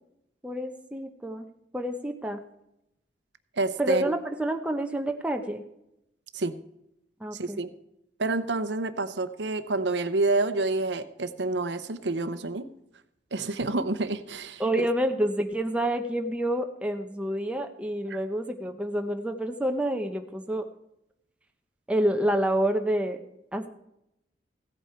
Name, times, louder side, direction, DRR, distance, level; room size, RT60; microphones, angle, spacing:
voice 1, 0.4-1.5 1.7-2.4 3.8-5.6 7.2-7.6 14.6-20.7 21.9-23.2 23.5-23.7, right 1 dB, 5° right, 5 dB, 0.8 m, -28 dB
voice 2, 3.6-4.0 6.3-6.6 7.3-7.7 8.2-12.7 13.3-14.9, right 2 dB, 85° right, 12 dB, 0.8 m, -28 dB
15.5 x 8.3 x 4.4 m, 0.83 s
head